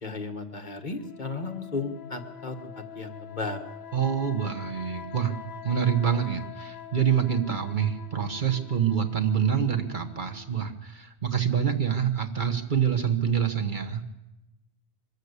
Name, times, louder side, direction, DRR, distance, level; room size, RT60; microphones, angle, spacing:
voice 1, 0.0-2.5 2.9-3.6, left 3 dB, 40° left, 5 dB, 1.6 m, -34 dB
sound 1, 0.9-10.7, left 7 dB, 60° left, 1.5 m, -45 dB
voice 2, 3.9-5.4 5.6-14.0, right 8 dB, 45° right, 5 dB, 1.4 m, -26 dB
24.0 x 13.5 x 8.2 m, 1.0 s
omnidirectional pair, 1.2 m